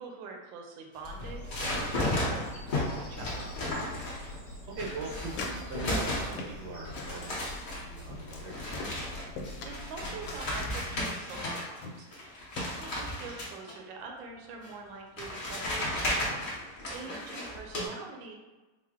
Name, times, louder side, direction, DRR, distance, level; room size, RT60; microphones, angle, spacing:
voice 1, 0.0-3.5 9.6-16.6 16.9-18.4, right 4 dB, 90° right, 1 dB, 1.4 m, -45 dB
sound 1, 1.0-4.4 4.8-6.6 6.8-11.8 12.1-13.7 14.6-14.7 15.2-17.9, left 1 dB, 55° left, 0.5 m, -34 dB
Bird vocalization bird call bird song, 1.0-11.1, left 1 dB, 25° left, 0.9 m, -45 dB
voice 2, 3.2-4.0 4.7-7.4 7.7-8.7 16.0-16.5, right 3 dB, 65° right, -3 dB, 0.5 m, -42 dB
sound 2, 4.8-5.6 5.9-6.7 7.0-7.2 7.7-7.8 8.1-8.4 8.7-9.7 10.0-10.8 11.4-11.5 11.8-12.2 12.6-12.9, left 3 dB, 80° left, 1.3 m, -41 dB
4.4 x 2.0 x 3.5 m, 1.2 s
omnidirectional pair, 2.1 m